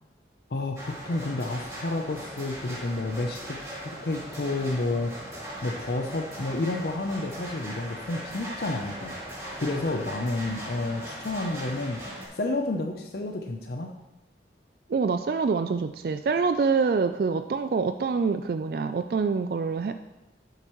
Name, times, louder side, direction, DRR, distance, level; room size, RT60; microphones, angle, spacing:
voice 1, 0.5-3.6 3.8-5.1 5.6-13.9, left 2 dB, 60° left, 4 dB, 0.6 m, -30 dB
sound 1, 0.8-12.2, equal, 15° right, 2.3 m, -39 dB
voice 2, 14.9-19.9, right 5 dB, 55° right, 9 dB, 0.3 m, -26 dB
11.5 x 7.7 x 3.1 m, 1.1 s
head